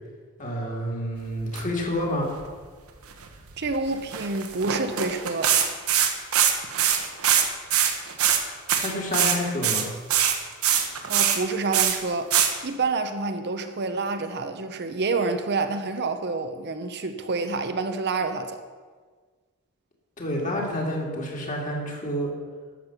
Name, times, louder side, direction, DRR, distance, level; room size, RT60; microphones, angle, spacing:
voice 1, 0.4-2.3 8.8-9.9 20.2-22.3, left 1 dB, 35° left, 2.2 m, -28 dB
sound 1, 1.4-1.6 2.0-2.1 2.4-2.5 3.1-3.8 4.1-7.5 7.7-8.4 8.7-9.4 9.6-11.4 11.7-12.0 12.3-12.5, right 9 dB, 75° right, 1.2 m, -22 dB
voice 2, 3.6-5.6 11.1-12.3 12.6-18.6, right 3 dB, 50° right, 0.7 m, -28 dB
12.0 x 7.4 x 6.0 m
head